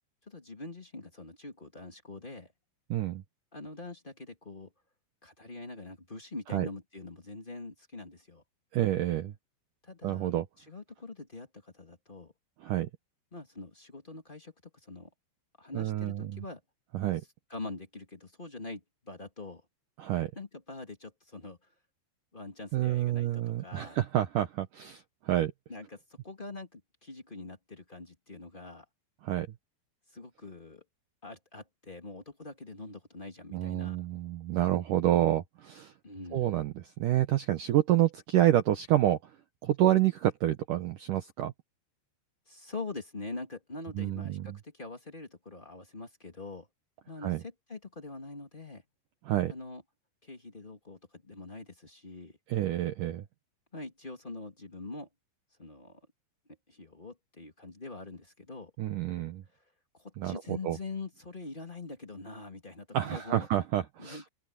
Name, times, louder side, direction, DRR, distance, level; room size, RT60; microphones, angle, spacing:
voice 1, 0.2-2.5 3.5-4.7 5.2-8.4 9.8-12.3 13.3-15.1 15.6-16.6 17.5-19.6 20.3-21.7 22.3-24.0 25.7-28.8 30.1-30.8 31.2-34.0 36.0-36.6 42.5-46.7 47.1-48.8 49.5-49.8 50.2-52.4 53.7-55.1 55.6-56.0 56.7-58.7 59.9-63.5 64.0-64.3, left 3 dB, 20° left, 1.4 m, -44 dB
voice 2, 2.9-3.2 6.5-6.7 8.7-9.3 10.0-10.5 12.6-12.9 15.7-16.4 16.9-17.2 20.0-20.3 22.7-25.5 29.2-29.5 33.5-35.9 36.3-39.3 39.6-41.5 44.0-44.6 47.2-47.4 49.3-49.5 52.5-53.2 58.8-59.4 60.2-60.8 62.9-64.3, right 13 dB, 80° right, 1.8 m, -28 dB
open air
omnidirectional pair, 5.3 m